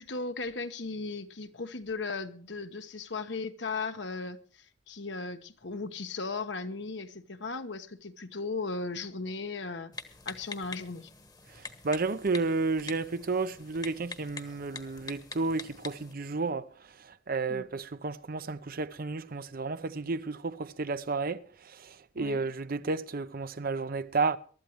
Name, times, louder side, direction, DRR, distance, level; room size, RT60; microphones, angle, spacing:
voice 1, 0.0-9.9 10.2-11.1 17.5-17.7 22.2-22.4, left 3 dB, 70° left, 1.2 m, -37 dB
Typing, 9.9-16.1, left 4 dB, 20° left, 1.2 m, -45 dB
voice 2, 11.8-16.7 17.0-24.4, right 3 dB, 55° right, 0.7 m, -32 dB
23.0 x 13.0 x 3.1 m
head